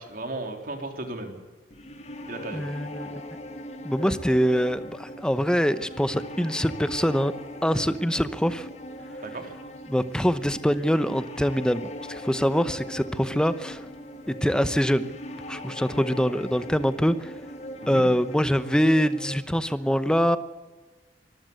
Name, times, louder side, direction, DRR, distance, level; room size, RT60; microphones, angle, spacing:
voice 1, 0.0-1.3 2.3-2.7 9.2-9.5 17.8-18.1, right 2 dB, 50° right, 4 dB, 3.8 m, -35 dB
sound 1, 1.7-19.4, equal, 40° left, 2.2 m, -40 dB
voice 2, 2.5-3.1 3.8-7.3 7.6-8.7 9.9-13.8 14.3-15.1 15.5-17.3 17.9-20.4, equal, 5° left, 12 dB, 0.9 m, -24 dB
24.5 x 14.5 x 8.1 m, 1.3 s
head